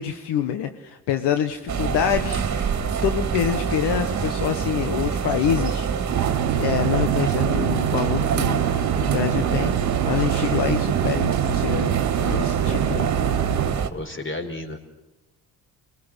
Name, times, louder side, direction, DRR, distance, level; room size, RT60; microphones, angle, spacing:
voice 1, 0.0-2.7 3.0-5.9 6.5-9.7 10.0-11.9 12.2-13.1, left 9 dB, 65° left, 8 dB, 1.5 m, -26 dB
sound 1, 1.7-13.9, right 7 dB, 40° right, 2.3 m, -26 dB
sound 2, 6.1-13.7, right 10 dB, 80° right, 1.3 m, -25 dB
voice 2, 13.9-14.8, left 2 dB, 30° left, 6 dB, 4.7 m, -32 dB
25.5 x 21.0 x 8.2 m, 1.0 s
supercardioid pair, 70°, 43 cm